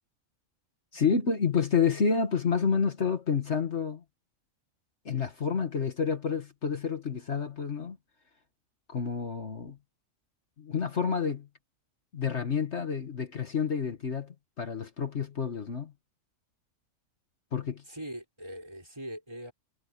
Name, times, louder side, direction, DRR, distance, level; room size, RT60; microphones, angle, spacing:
voice 1, 0.9-4.0 5.1-8.0 8.9-9.8 10.6-11.5 12.1-15.9 17.5-17.8, left 6 dB, 60° left, 1.8 m, -29 dB
voice 2, 17.9-19.5, right 1 dB, 20° right, 5.6 m, -41 dB
omnidirectional pair, 1.4 m